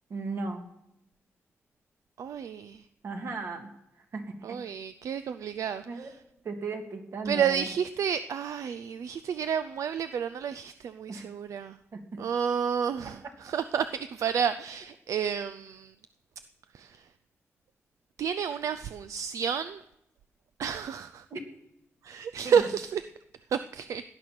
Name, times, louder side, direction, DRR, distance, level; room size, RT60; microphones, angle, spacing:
voice 1, 0.1-0.7 3.0-3.7 4.1-4.6 5.9-6.1 6.4-7.7 11.1-11.3 11.9-12.0 13.2-13.3 21.3-21.4 22.4-22.7, right 3 dB, 60° right, 3 dB, 2.4 m, -36 dB
voice 2, 2.2-2.8 4.4-5.8 7.3-11.7 12.2-13.2 13.4-15.9 16.7-16.9 18.2-19.8 20.6-21.2 22.0-23.0 23.5-24.0, right 7 dB, 85° right, 12 dB, 0.5 m, -30 dB
17.5 x 10.5 x 6.0 m, 0.83 s
wide cardioid pair, 130°, 5 cm